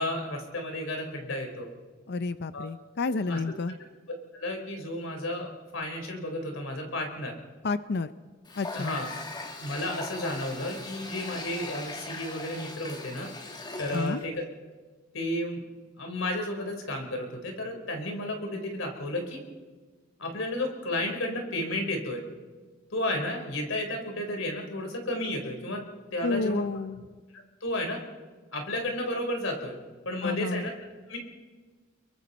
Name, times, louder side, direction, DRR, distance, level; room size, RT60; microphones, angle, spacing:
voice 1, 0.0-1.7 2.5-2.7 3.3-3.5 4.3-7.4 8.7-9.1 9.6-13.3 13.8-14.4 15.1-15.6 16.0-19.4 20.2-22.2 22.9-26.6 27.3-28.0 28.5-29.8 30.0-30.7 31.1-31.2, left 1 dB, 75° left, 3 dB, 4.2 m, -32 dB
voice 2, 2.1-3.7 7.6-8.1 8.6-9.0 13.9-14.2 26.2-27.0 30.2-30.7, left 3 dB, 55° left, 13 dB, 0.6 m, -30 dB
Water tap faucet, 8.5-14.2, left 2 dB, 20° left, 1.6 m, -39 dB
29.0 x 23.0 x 4.2 m, 1.4 s
head